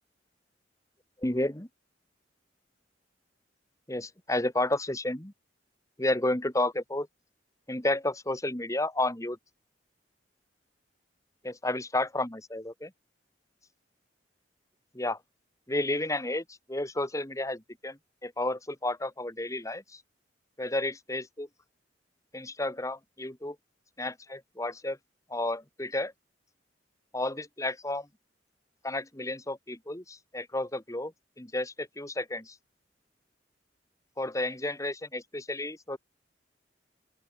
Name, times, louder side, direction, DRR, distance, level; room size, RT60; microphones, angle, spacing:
voice 1, 1.2-1.7 3.9-5.3 6.0-7.1 7.7-9.4 11.4-12.9 14.9-15.2 15.7-20.0 20.6-21.5 22.3-23.6 24.0-25.0 25.3-26.1 27.1-28.1 28.8-32.6 34.2-36.0, left 1 dB, 20° left, 2.1 m, -31 dB
open air
head